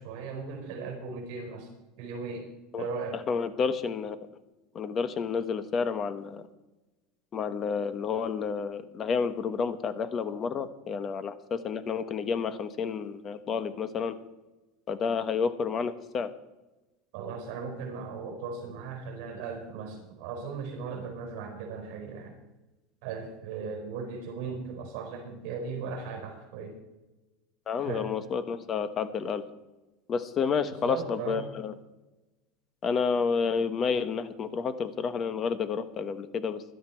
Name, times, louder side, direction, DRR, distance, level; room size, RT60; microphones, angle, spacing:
voice 1, 0.0-1.7 2.0-2.5 2.8-3.2 10.2-10.3 17.1-22.4 23.0-26.8 27.8-28.1 30.8-31.5, right 5 dB, 60° right, 2 dB, 4.5 m, -37 dB
voice 2, 3.1-4.2 4.7-6.5 7.3-14.1 14.9-16.3 27.7-29.4 30.1-31.7 32.8-36.6, left 6 dB, 30° left, 12 dB, 1.0 m, -30 dB
16.5 x 12.0 x 4.5 m, 1.1 s
supercardioid pair, 150°, 0 cm